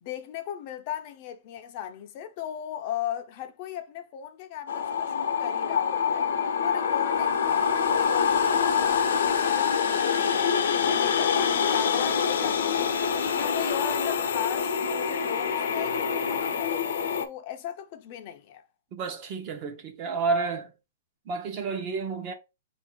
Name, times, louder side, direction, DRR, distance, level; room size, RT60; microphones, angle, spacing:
voice 1, 0.0-6.3 6.6-13.0 13.3-18.6, left 10 dB, 35° left, 0.6 m, -37 dB
sound 1, 4.7-17.3, left 7 dB, 75° left, 0.8 m, -25 dB
voice 2, 18.9-20.7 21.3-22.3, right 4 dB, 35° right, 0.8 m, -30 dB
4.1 x 2.6 x 4.4 m
hypercardioid pair, 160°, 0 cm